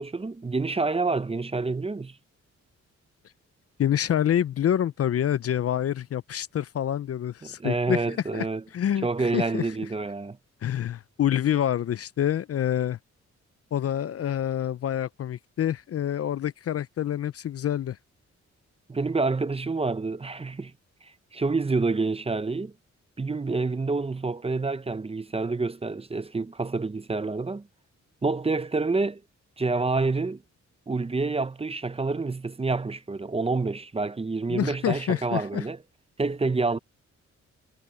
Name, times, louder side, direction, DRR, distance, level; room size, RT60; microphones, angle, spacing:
voice 1, 0.0-2.2 7.4-8.6 9.0-10.4 18.9-20.7 21.0-22.7 23.2-27.7 28.2-29.2 29.6-30.4 30.9-35.8 36.2-36.8, right 3 dB, 20° right, 0.7 m, -28 dB
voice 2, 3.8-8.5 8.7-9.1 9.3-9.6 10.6-13.0 13.7-18.0 34.5-35.6, left 10 dB, 55° left, 0.5 m, -27 dB
cardioid pair, 90°, 29 cm